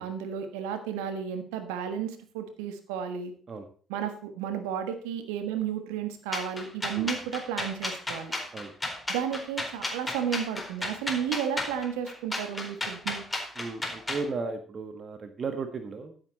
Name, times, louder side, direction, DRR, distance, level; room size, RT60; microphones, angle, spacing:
voice 1, 0.0-3.3 3.9-8.3 9.1-13.2, right 8 dB, 75° right, 9 dB, 1.3 m, -33 dB
sound 1, 6.3-14.3, left 2 dB, 15° left, 4.1 m, -33 dB
voice 2, 13.5-16.2, right 4 dB, 45° right, 8 dB, 1.5 m, -35 dB
14.0 x 8.1 x 4.1 m, 0.43 s
hypercardioid pair, 50°, 0 cm